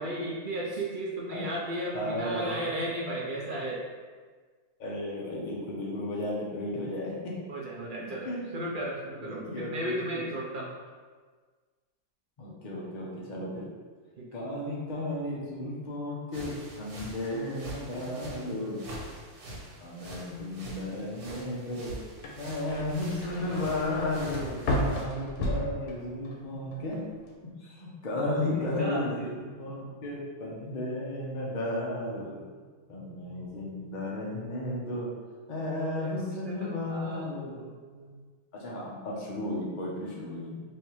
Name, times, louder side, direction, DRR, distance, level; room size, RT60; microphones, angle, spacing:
voice 1, 0.0-3.8 7.5-10.7 14.2-14.3 17.9-18.8 24.2-24.8 26.7-26.8 28.2-28.4 28.8-29.3 36.0-38.2, right 1 dB, 60° right, -4 dB, 0.5 m, -36 dB
voice 2, 1.9-2.6 4.8-7.5 8.0-8.5 9.2-10.2 12.4-13.7 14.3-18.8 19.8-22.0 22.4-27.2 27.4-29.3 29.6-32.5 32.9-35.1 35.5-37.6 38.5-40.6, left 1 dB, 40° left, -4 dB, 0.7 m, -34 dB
sound 1, 16.3-25.0, right 1 dB, 90° right, 1.4 m, -45 dB
sound 2, 22.1-26.4 26.7-27.3, left 1 dB, 85° left, 1.2 m, -33 dB
3.4 x 2.7 x 4.5 m, 1.5 s
omnidirectional pair, 1.6 m